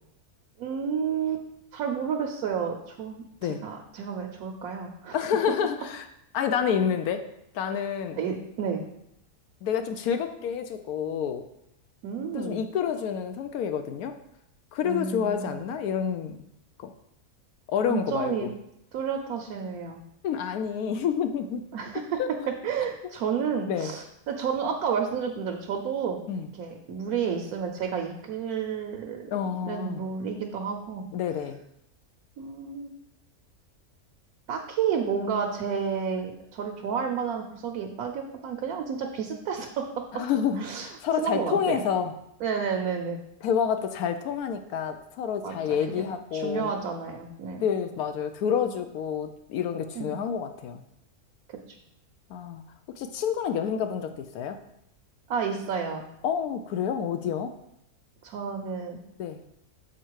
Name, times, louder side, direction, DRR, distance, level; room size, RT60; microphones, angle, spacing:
voice 1, 0.6-1.4 1.7-5.2 8.2-8.8 12.0-12.6 14.8-15.6 17.9-18.5 18.9-20.0 21.7-22.2 22.6-26.2 26.6-29.3 29.6-31.0 32.4-32.9 34.5-39.9 40.6-40.9 41.2-41.8 42.4-43.2 45.4-45.6 46.0-46.1 46.3-47.7 49.9-50.2 55.3-56.0 58.2-59.0, right 6 dB, 80° right, 2 dB, 1.2 m, -31 dB
voice 2, 5.1-6.0 6.3-7.2 7.5-8.2 9.6-11.5 12.3-14.2 14.7-16.5 16.8-16.9 17.7-18.5 20.2-21.7 22.2-22.3 23.6-23.9 26.3-26.5 29.3-30.0 31.1-31.6 40.1-42.1 43.4-46.7 47.6-50.8 52.3-52.6 53.0-54.6 56.2-57.6 59.2-59.4, left 8 dB, 80° left, 8 dB, 1.0 m, -28 dB
7.3 x 4.4 x 4.6 m, 0.79 s
omnidirectional pair, 1.6 m